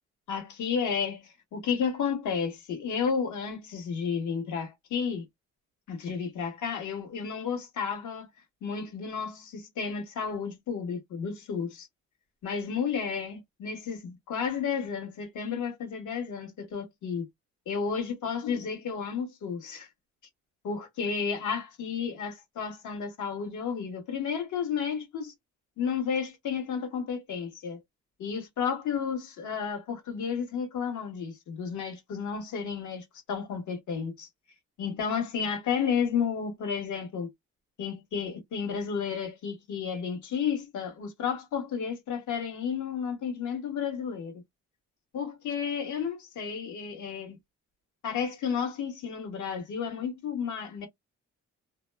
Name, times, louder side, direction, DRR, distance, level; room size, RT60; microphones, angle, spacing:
voice 1, 0.3-5.3 5.9-8.3 8.6-11.9 12.4-17.3 17.7-19.9 20.6-25.3 25.8-27.8 28.2-34.3 34.8-37.3 37.8-44.4 45.1-47.4 48.0-50.9, left 6 dB, 75° left, 1.3 m, -32 dB
2.7 x 2.1 x 2.2 m
cardioid pair, 90°, 30 cm